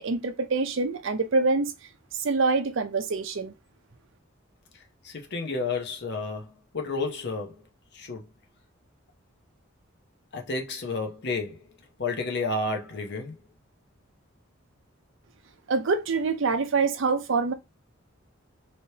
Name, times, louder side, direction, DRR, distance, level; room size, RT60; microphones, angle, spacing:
voice 1, 0.0-1.7 2.2-3.5 15.7-17.5, right 4 dB, 70° right, 0.6 m, -25 dB
voice 2, 5.0-7.6 7.9-8.2 10.3-11.7 12.0-13.4, left 3 dB, 60° left, 0.8 m, -31 dB
3.2 x 3.0 x 2.8 m
head